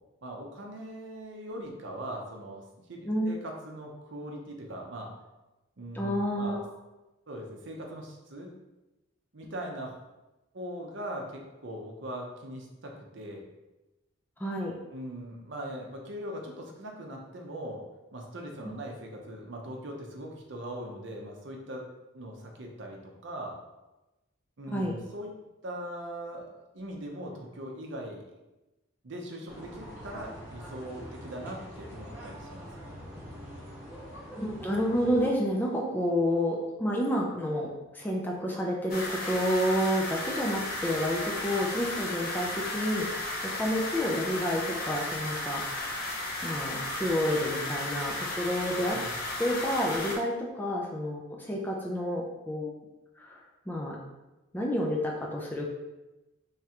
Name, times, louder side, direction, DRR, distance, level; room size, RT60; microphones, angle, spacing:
voice 1, 0.2-5.1 5.8-6.6 7.3-8.5 9.3-10.0 10.5-13.4 14.9-17.8 18.1-21.8 22.1-23.6 24.6-25.3 25.6-28.2 29.0-32.7 48.9-49.2, right 1 dB, 60° right, 1 dB, 0.6 m, -40 dB
voice 2, 5.9-6.6 14.4-14.7 24.7-24.9 34.4-46.0 46.4-49.0 49.4-52.7 53.2-54.0 54.5-55.7, equal, 10° left, -2 dB, 0.4 m, -30 dB
sound 1, 29.5-35.3, equal, 10° right, 0.9 m, -43 dB
sound 2, 38.9-50.2, left 2 dB, 45° left, 0.7 m, -34 dB
3.6 x 3.2 x 2.9 m, 1.0 s
head